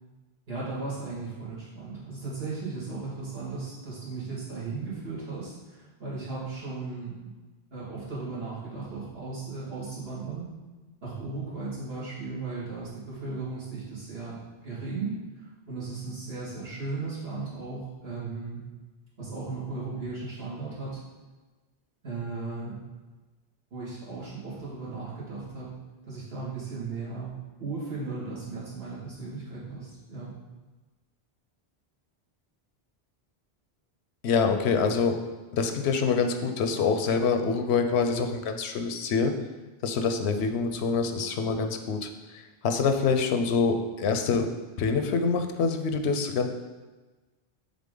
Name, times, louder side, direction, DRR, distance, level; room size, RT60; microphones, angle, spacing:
voice 1, 0.5-7.3 7.7-10.5 11.0-14.4 14.6-18.6 19.2-21.0 22.0-22.8 23.7-25.7 26.0-27.3 27.6-30.3, right 3 dB, 70° right, -8 dB, 2.4 m, -36 dB
voice 2, 34.2-35.2 35.5-39.3 39.8-44.4 44.8-46.5, left 5 dB, 85° left, 6 dB, 0.9 m, -26 dB
7.3 x 3.9 x 3.8 m, 1.2 s
omnidirectional pair, 1.1 m